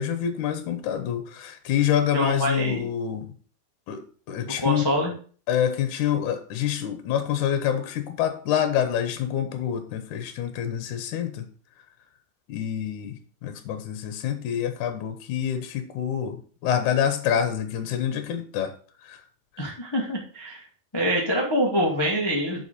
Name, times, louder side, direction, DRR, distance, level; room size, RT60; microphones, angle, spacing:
voice 1, 0.0-3.3 3.9-4.0 4.3-4.9 5.5-11.5 12.5-18.7 19.0-19.2 19.6-19.7, left 9 dB, 70° left, 8 dB, 2.3 m, -27 dB
voice 2, 2.1-2.8 4.4-5.1 19.6-20.6 20.9-22.6, equal, 15° left, -1 dB, 1.0 m, -25 dB
7.1 x 5.5 x 6.7 m, 0.42 s
omnidirectional pair, 3.8 m